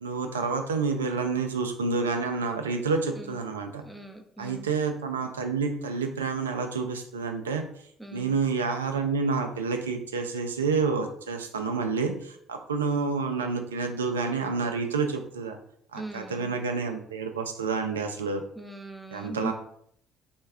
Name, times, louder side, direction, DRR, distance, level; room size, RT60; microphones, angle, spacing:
voice 1, 0.0-3.8 4.4-7.6 8.1-15.6 15.9-18.4 19.1-19.5, right 4 dB, 80° right, 6 dB, 0.3 m, -29 dB
voice 2, 3.9-4.7 8.0-8.4 15.9-16.6 18.6-19.5, right 2 dB, 5° right, 4 dB, 0.6 m, -40 dB
3.1 x 2.2 x 3.4 m, 0.65 s
figure-of-eight pair, 55°, 0 cm